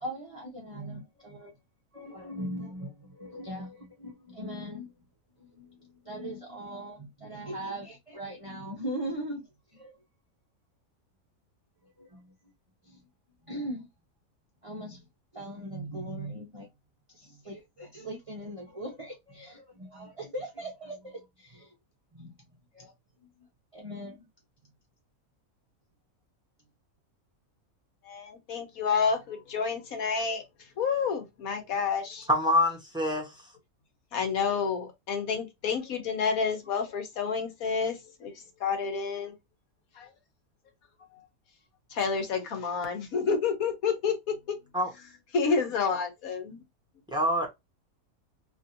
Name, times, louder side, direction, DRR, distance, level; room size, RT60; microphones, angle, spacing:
voice 1, 0.0-1.5 1.9-4.9 5.5-5.8 6.0-9.4 9.7-10.0 12.0-12.3 12.9-13.0 13.5-13.9 14.6-15.0 15.3-16.7 17.1-21.7 22.1-22.3 22.7-22.9 23.7-24.3, right 1 dB, 30° right, 0.8 m, -39 dB
voice 2, 28.1-30.4 30.8-32.3 34.1-38.0 38.2-38.3 38.6-39.3 40.0-40.1 41.9-44.4 45.3-46.6, left 5 dB, 80° left, 1.4 m, -29 dB
voice 3, 32.3-33.4 44.7-44.9 47.1-47.5, left 1 dB, 5° right, 1.1 m, -25 dB
3.1 x 2.6 x 2.7 m
omnidirectional pair, 1.5 m